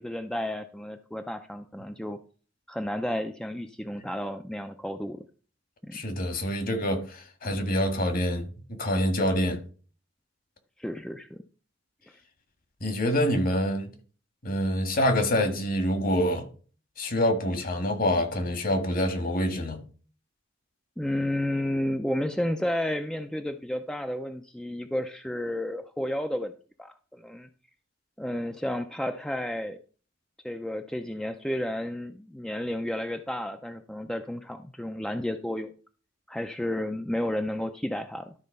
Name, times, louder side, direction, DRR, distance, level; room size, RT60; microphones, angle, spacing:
voice 1, 0.0-2.2 2.7-5.2 5.8-6.0 7.4-7.5 10.8-11.4 21.0-26.5 26.8-27.5 28.2-29.8 30.4-35.7 36.3-38.3, left 1 dB, 5° left, 0.5 m, -32 dB
voice 2, 5.9-9.6 12.8-13.9 14.4-16.5 17.0-19.8, equal, 50° left, 1.7 m, -26 dB
12.5 x 4.2 x 5.4 m
head